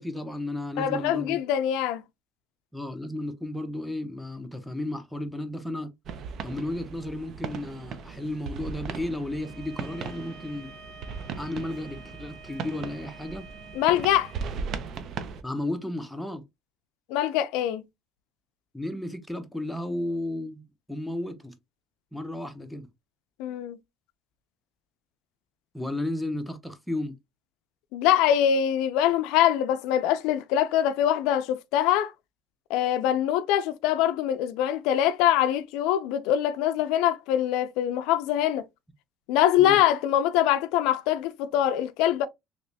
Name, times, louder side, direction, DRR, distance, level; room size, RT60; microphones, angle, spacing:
voice 1, 0.0-1.4 2.7-5.9 6.4-10.7 11.4-13.5 15.4-16.4 18.7-20.6 20.9-21.5 22.1-22.9 25.7-27.2 39.6-39.8, left 1 dB, ahead, 0.6 m, -33 dB
voice 2, 0.8-2.0 13.8-14.3 17.1-17.8 23.4-23.8 27.9-32.1 32.7-38.6 39.3-42.3, left 11 dB, 80° left, 0.4 m, -23 dB
sound 1, 6.0-15.4, right 6 dB, 50° right, 0.5 m, -38 dB
Bowed string instrument, 9.3-14.6, right 3 dB, 75° right, 1.1 m, -49 dB
3.2 x 2.9 x 2.6 m
cardioid pair, 135°, 0 cm